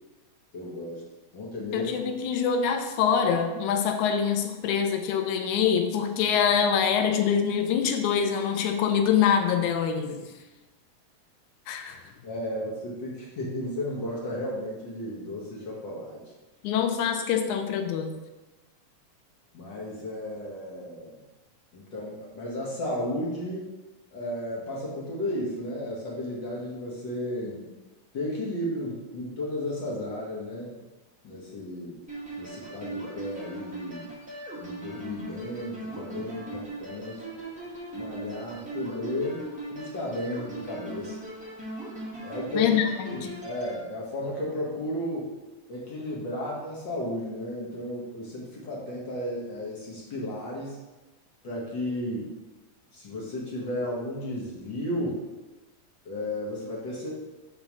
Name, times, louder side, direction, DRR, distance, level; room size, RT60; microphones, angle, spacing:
voice 1, 0.5-1.0 1.3-1.9 12.2-16.2 19.5-21.2 21.7-23.7 24.1-27.7 28.1-30.7 31.2-32.0 32.4-34.1 34.6-37.2 37.9-39.4 39.7-41.2 42.2-42.8 43.0-45.3 45.7-50.8 51.4-52.3 52.9-55.2 56.0-57.1, left 1 dB, 50° left, -4 dB, 1.5 m, -34 dB
voice 2, 1.7-10.3 11.7-12.0 16.6-18.1 42.6-42.8 43.1-43.4, left 7 dB, 85° left, 6 dB, 2.1 m, -25 dB
sound 1, 32.1-43.8, right 2 dB, 10° right, 0.5 m, -39 dB
5.4 x 3.8 x 5.9 m, 1.1 s
omnidirectional pair, 3.3 m